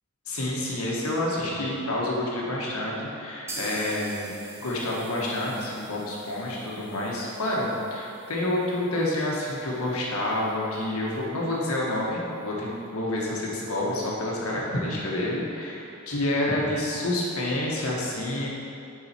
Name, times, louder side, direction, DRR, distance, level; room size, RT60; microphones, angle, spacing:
voice 1, 0.3-4.3 4.6-18.5, left 1 dB, 80° left, -4 dB, 1.4 m, -28 dB
Zildjian Transitional Stamp Sizzle Ride Cymbal Hit, 3.5-11.2 11.5-11.6 11.9-12.0 12.4-12.5, right 2 dB, 10° right, 0.6 m, -45 dB
7.2 x 4.8 x 4.4 m, 2.6 s
head